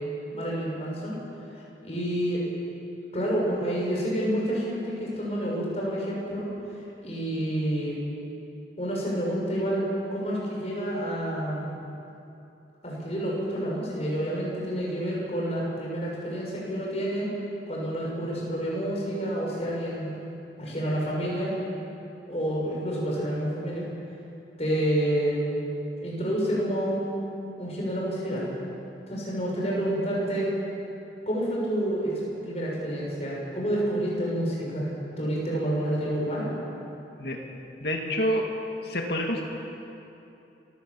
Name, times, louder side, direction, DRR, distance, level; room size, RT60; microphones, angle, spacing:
voice 1, 0.3-1.2 1.8-2.4 3.1-6.5 7.0-8.0 8.8-9.8 10.1-11.7 12.8-17.3 17.7-20.1 20.6-21.5 22.3-23.8 24.6-25.6 26.0-27.3 27.6-28.5 29.1-30.5 31.3-34.9 35.2-36.5, right 1 dB, 35° left, -4 dB, 6.6 m, -28 dB
voice 2, 37.8-38.4 38.8-39.4, equal, 65° left, 0 dB, 2.4 m, -27 dB
26.0 x 16.0 x 7.2 m, 2.8 s
head